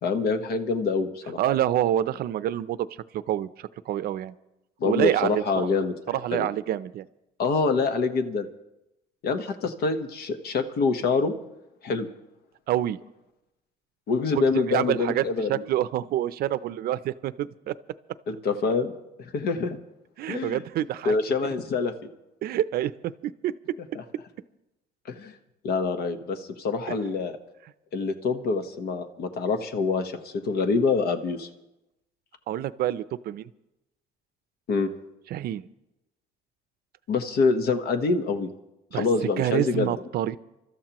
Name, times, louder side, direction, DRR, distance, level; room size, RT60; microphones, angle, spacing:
voice 1, 0.0-1.4 4.8-6.5 7.4-8.5 9.2-11.3 11.8-12.1 14.1-15.6 18.3-18.9 19.2-19.8 20.3-20.6 21.0-21.9 25.1-25.3 25.6-27.4 27.9-31.5 34.7-34.9 37.1-38.5 38.9-39.9, left 4 dB, 70° left, 8 dB, 1.3 m, -26 dB
voice 2, 1.4-2.9 3.1-4.3 4.8-5.7 6.1-7.1 12.7-13.0 14.3-17.8 20.2-21.1 22.4-23.5 26.9-27.0 32.5-33.5 35.3-35.7 38.9-39.1 39.4-40.4, right 12 dB, 65° right, 16 dB, 0.6 m, -27 dB
29.0 x 13.0 x 3.0 m, 0.92 s
cardioid pair, 110°, 17 cm